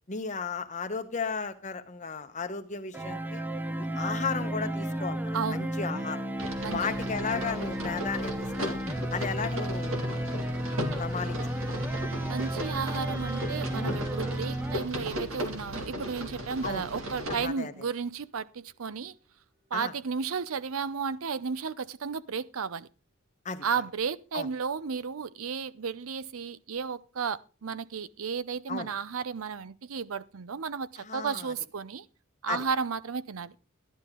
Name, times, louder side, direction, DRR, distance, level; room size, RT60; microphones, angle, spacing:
voice 1, 0.1-3.4 3.8-6.2 6.7-8.8 9.1-10.5 11.0-11.4 13.7-14.0 16.6-16.9 17.3-17.7 19.7-19.9 23.4-23.6 24.3-24.5 28.7-28.9 31.0-31.5 32.5-32.6, left 5 dB, 35° left, 1.0 m, -35 dB
sound 1, 2.9-14.8, right 1 dB, 10° right, 0.7 m, -33 dB
voice 2, 5.3-5.7 6.6-7.0 12.3-19.1 19.7-22.9 23.6-32.0 32.4-33.5, right 6 dB, 85° right, 0.6 m, -33 dB
sound 2, 6.4-17.4, equal, 70° right, 2.2 m, -36 dB
sound 3, 9.8-20.4, equal, 55° right, 5.6 m, -57 dB
11.5 x 11.0 x 3.7 m
head